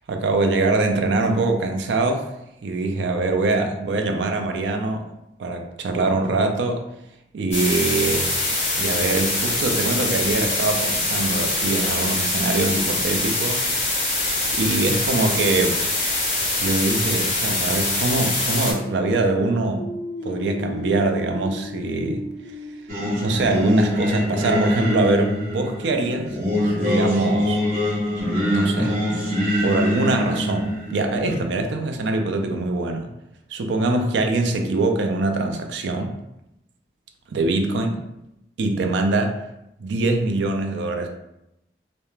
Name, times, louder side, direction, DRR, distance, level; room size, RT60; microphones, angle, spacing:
voice 1, 0.1-2.3 2.6-5.1 5.4-6.8 7.3-8.4 8.8-13.7 14.5-15.9 16.6-19.9 20.2-22.2 23.2-26.4 26.8-27.6 28.5-29.0 29.6-33.1 33.5-36.2 37.3-38.0 38.6-39.4 39.8-41.1, right 2 dB, 80° right, 4 dB, 0.4 m, -23 dB
sound 1, 7.5-18.7, left 2 dB, 40° left, 0.7 m, -24 dB
sound 2, 18.5-24.2, left 1 dB, 70° left, 0.4 m, -36 dB
Singing, 22.9-31.4, left 1 dB, 45° right, 0.6 m, -24 dB
2.3 x 2.1 x 3.0 m, 0.85 s
head